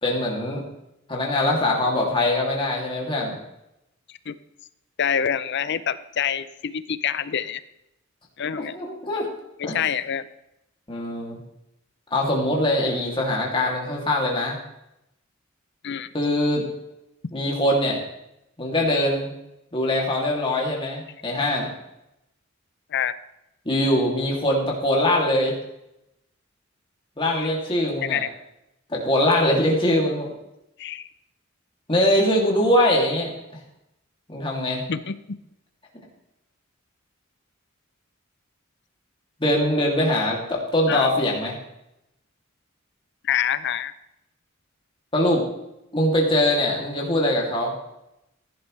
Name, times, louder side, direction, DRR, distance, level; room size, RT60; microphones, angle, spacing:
voice 1, 0.0-0.6 1.1-3.4 8.6-9.3 9.6-9.8 10.9-11.4 12.1-14.6 16.1-16.6 17.3-18.0 18.6-19.3 19.7-21.8 23.6-25.6 27.2-28.2 28.9-30.3 31.9-33.3 34.3-34.8 39.4-41.5 45.1-45.4 45.9-47.7, left 1 dB, 25° left, -2 dB, 2.7 m, -22 dB
voice 2, 5.0-7.6 8.4-8.8 9.6-10.3 15.8-16.1 22.9-23.2 27.3-27.5 28.1-28.3 30.8-31.1 34.9-35.4 40.9-41.1 43.2-43.9, left 8 dB, 55° left, 14 dB, 0.6 m, -26 dB
16.0 x 11.5 x 3.3 m, 0.84 s
head